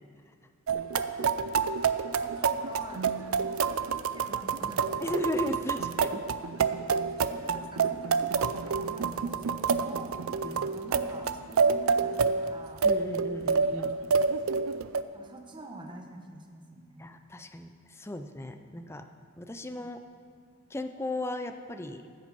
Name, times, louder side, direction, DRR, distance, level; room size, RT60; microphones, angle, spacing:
sound 1, 0.7-15.0, right 5 dB, 75° right, 0.5 m, -28 dB
voice 1, 1.6-3.0 3.5-5.2 5.7-6.1 6.9-10.3 10.7-12.8 15.1-17.0 19.8-19.9, right 2 dB, 20° right, 3 dB, 1.1 m, -47 dB
voice 2, 5.0-6.2 10.4-10.7 12.8-14.0 17.0-19.0 19.4-20.0 20.7-22.1, left 1 dB, 10° left, 7 dB, 0.5 m, -36 dB
15.0 x 8.3 x 5.3 m, 2.1 s
head